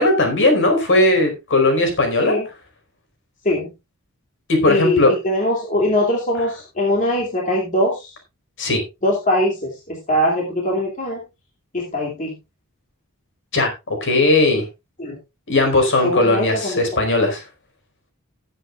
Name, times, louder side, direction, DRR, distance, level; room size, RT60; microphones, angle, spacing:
voice 1, 0.0-2.4 4.5-5.1 8.6-8.8 13.5-14.6 15.5-17.4, left 2 dB, 60° left, 4 dB, 4.7 m, -17 dB
voice 2, 4.7-8.1 9.0-11.2 11.7-12.3 15.0-15.2 16.0-16.8, left 1 dB, 35° left, -1 dB, 2.7 m, -21 dB
18.5 x 8.2 x 2.4 m, 0.25 s
head